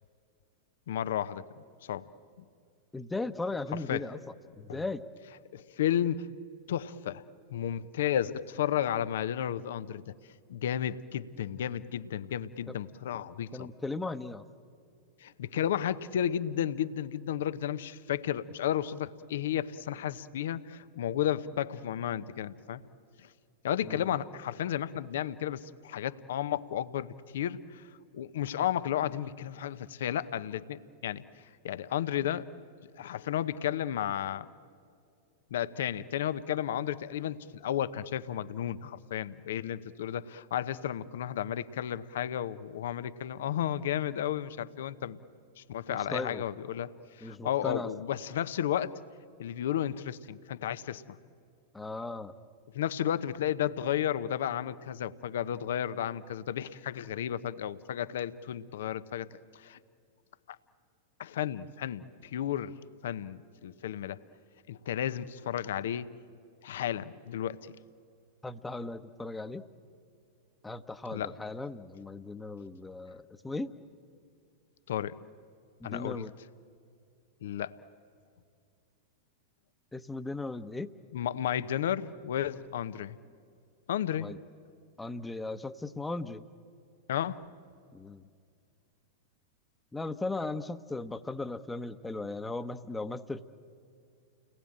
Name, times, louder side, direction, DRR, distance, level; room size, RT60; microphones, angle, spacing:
voice 1, 0.9-1.4 1.8-2.1 2.4-2.5 3.9-4.0 4.7-4.8 5.5-6.3 6.7-10.1 10.5-13.7 15.2-22.8 23.6-27.9 28.1-31.2 31.6-32.5 33.0-34.5 35.5-45.2 45.6-46.9 47.2-49.0 49.4-51.2 52.7-59.8 60.5-60.6 61.2-62.8 63.0-64.2 64.7-66.1 66.6-67.7 71.1-71.3 74.9-75.2 75.8-76.2 77.4-77.8 81.1-83.2 83.9-84.3 87.1-87.4, left 10 dB, 70° left, 14 dB, 0.9 m, -33 dB
voice 2, 2.9-5.0 12.7-12.8 13.5-14.4 23.8-24.1 45.9-46.4 47.2-47.9 51.7-52.3 68.4-69.6 70.6-73.8 75.8-76.3 79.9-80.9 84.2-84.4 85.0-86.4 87.9-88.3 89.9-93.5, left 2 dB, 10° left, 10 dB, 1.1 m, -37 dB
30.0 x 19.5 x 8.8 m, 2.4 s
hypercardioid pair, 100°, 0 cm